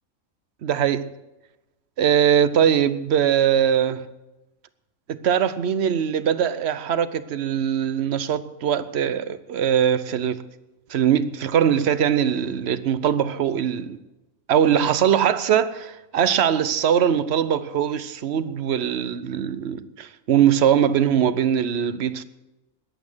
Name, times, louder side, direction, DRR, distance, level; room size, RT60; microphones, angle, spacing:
voice 1, 0.6-1.1 2.0-4.1 5.1-10.4 10.9-14.0 14.5-22.2, right 9 dB, 55° right, 1.0 m, -21 dB
20.5 x 8.6 x 6.2 m
omnidirectional pair, 1.4 m